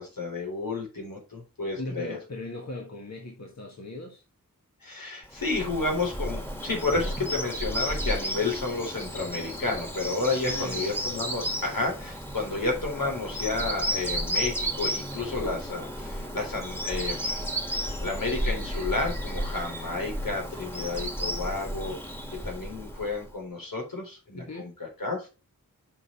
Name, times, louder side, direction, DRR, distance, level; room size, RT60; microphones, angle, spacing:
voice 1, 0.0-2.2 4.8-17.4 17.7-22.0 22.3-25.3, left 3 dB, 80° left, 3.9 m, -31 dB
voice 2, 1.7-4.2 10.4-11.1 24.3-24.8, left 2 dB, 50° left, 1.7 m, -38 dB
Bird vocalization bird call bird song, 5.3-23.3, equal, 5° left, 1.9 m, -33 dB
9.1 x 5.7 x 3.3 m
wide cardioid pair, 60°, 33 cm